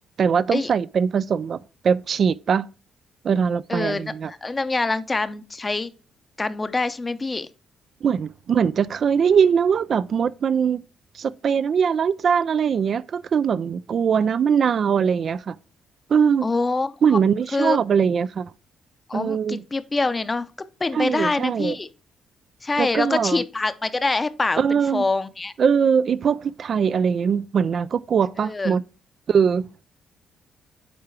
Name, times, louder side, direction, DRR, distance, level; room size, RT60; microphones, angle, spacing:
voice 1, 0.2-1.6 1.8-2.7 3.2-4.3 8.0-10.8 11.1-15.5 16.1-16.5 17.0-18.5 19.1-19.6 20.9-21.8 22.8-23.4 24.6-25.1 25.6-28.8 29.3-29.7, right 7 dB, 55° right, 0.3 m, -21 dB
voice 2, 3.7-5.9 6.4-7.5 14.2-14.3 16.4-17.2 17.5-17.8 19.1-20.5 20.8-21.9 22.6-24.6 24.9-25.5 28.4-28.8, left 3 dB, 25° left, 0.6 m, -25 dB
9.5 x 3.7 x 4.5 m
cardioid pair, 90°, 0 cm